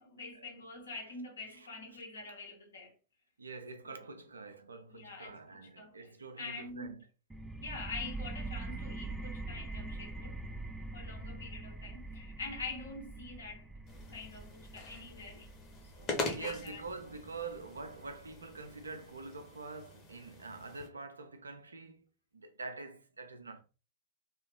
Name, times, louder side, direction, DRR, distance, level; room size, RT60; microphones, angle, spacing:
voice 1, 0.0-2.9 3.8-4.0 4.9-6.1 6.4-7.0 7.6-10.4 10.9-13.7 14.1-15.5 15.8-16.8, left 3 dB, 70° left, 1.1 m, -45 dB
voice 2, 3.4-7.0 11.3-11.5 16.3-23.6, right 4 dB, 75° right, 0.5 m, -45 dB
sound 1, 7.3-18.7, right 2 dB, 5° right, 0.3 m, -44 dB
sound 2, 13.9-20.9, left 3 dB, 30° left, 1.0 m, -43 dB
2.7 x 2.4 x 3.7 m
figure-of-eight pair, 90°, 0 cm